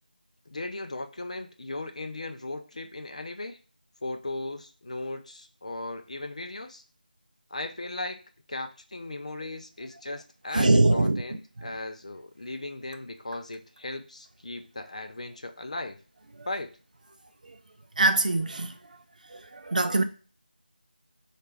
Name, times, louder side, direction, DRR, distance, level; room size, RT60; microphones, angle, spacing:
voice 1, 0.5-3.6 4.0-6.8 7.5-8.2 8.5-16.0 16.5-16.8, left 2 dB, 45° left, 0.5 m, -37 dB
voice 2, 10.5-11.2 18.0-18.7 19.3-20.0, right 2 dB, 50° right, 0.5 m, -22 dB
4.3 x 2.4 x 3.2 m
figure-of-eight pair, 170°, 5 cm